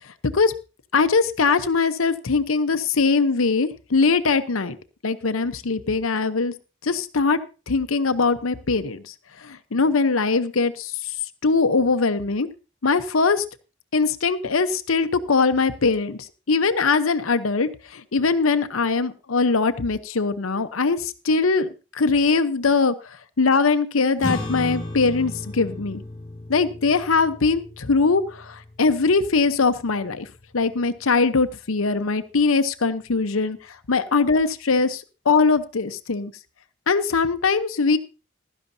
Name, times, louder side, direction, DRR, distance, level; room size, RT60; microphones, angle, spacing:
voice 1, 0.9-4.8 5.0-6.5 6.8-7.4 7.7-9.1 9.4-11.1 11.4-12.5 12.8-13.4 13.9-26.0 26.5-30.3 30.5-36.3 36.9-38.0, left 4 dB, 90° left, 10 dB, 0.8 m, -21 dB
sound 1, 24.2-30.8, left 1 dB, 20° left, 2.9 m, -35 dB
16.0 x 12.0 x 2.7 m, 0.32 s
head